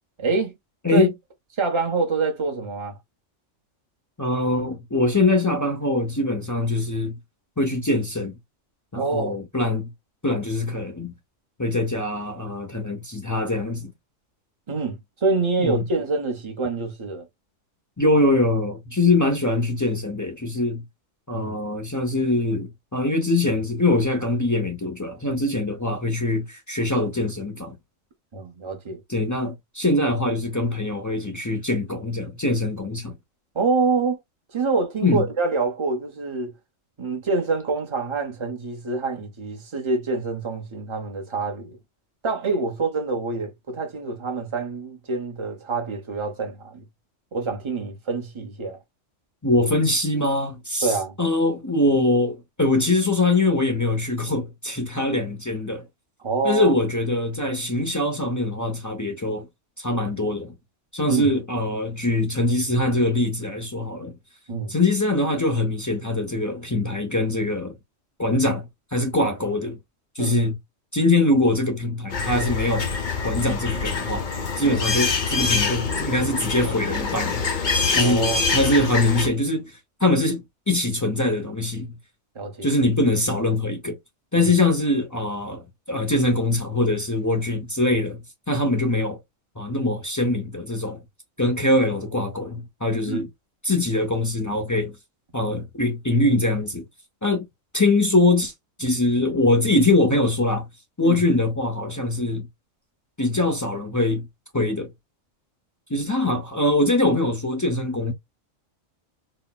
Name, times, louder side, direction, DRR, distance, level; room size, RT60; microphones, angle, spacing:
voice 1, 0.2-0.5 0.9-1.1 1.6-3.0 8.9-9.4 14.7-17.3 21.3-21.6 28.3-29.0 33.5-34.2 34.5-36.5 37.0-41.8 42.2-46.8 47.3-48.8 50.8-51.2 56.2-56.7 61.1-61.3 64.5-64.8 70.2-70.5 74.6-74.8 78.0-78.4 82.3-82.7 84.3-84.5 93.1-93.2 101.0-101.2, right 3 dB, 25° right, 0.8 m, -26 dB
voice 2, 4.2-7.2 7.6-8.3 8.9-9.9 10.2-11.1 11.6-13.9 15.6-15.8 18.0-20.8 21.3-27.8 29.1-33.2 35.0-35.3 49.4-55.9 56.4-59.5 59.8-60.5 60.9-64.1 64.7-67.7 68.2-69.8 70.2-70.6 70.9-72.9 73.2-74.3 74.6-77.5 77.9-81.9 82.6-84.0 84.3-85.6 85.9-88.2 88.5-89.2 89.6-91.0 91.4-93.3 93.6-94.9 95.3-96.8 97.2-97.5 97.7-98.5 98.8-100.7 101.0-102.5 103.2-104.3 104.5-104.9 105.9-108.1, left 2 dB, 25° left, 0.4 m, -23 dB
sound 1, 72.1-79.3, left 4 dB, 45° left, 0.8 m, -25 dB
4.2 x 2.1 x 2.2 m
omnidirectional pair, 1.4 m